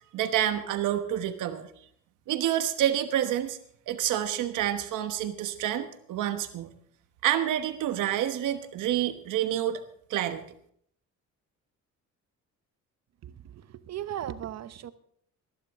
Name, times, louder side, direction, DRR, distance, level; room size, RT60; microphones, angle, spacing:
voice 1, 0.1-1.7 2.3-3.6 3.9-6.7 7.2-9.8 10.1-10.4, right 11 dB, 90° right, 9 dB, 1.2 m, -28 dB
voice 2, 13.2-14.9, right 11 dB, 60° right, 13 dB, 0.9 m, -37 dB
19.0 x 11.0 x 3.6 m, 0.66 s
cardioid pair, 90°, 30 cm